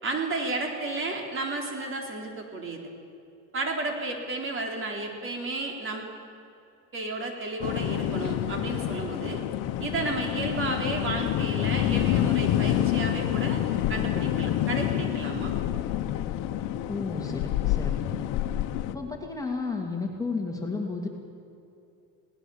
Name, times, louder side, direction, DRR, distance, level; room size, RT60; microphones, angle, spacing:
voice 1, 0.0-2.8 3.5-6.1 6.9-9.4 9.8-13.6 13.9-15.5, right 2 dB, 35° right, 2 dB, 4.0 m, -32 dB
sound 1, 7.6-18.9, left 12 dB, 70° left, 1.2 m, -27 dB
voice 2, 16.9-18.2 18.9-21.1, left 4 dB, 10° left, 0 dB, 2.8 m, -32 dB
20.5 x 18.5 x 7.3 m, 2.6 s
supercardioid pair, 105°, 34 cm